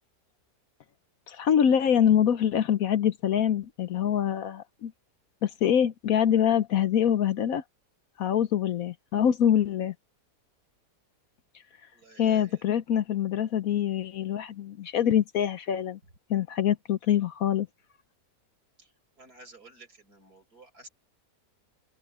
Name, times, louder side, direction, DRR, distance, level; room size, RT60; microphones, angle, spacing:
voice 1, 1.3-4.9 5.4-7.6 8.2-9.9 12.2-16.0 16.3-17.7, left 9 dB, 65° left, 1.1 m, -25 dB
voice 2, 11.9-12.6 18.8-18.9 19.2-20.9, right 3 dB, 65° right, 6.7 m, -52 dB
open air
omnidirectional pair, 1.8 m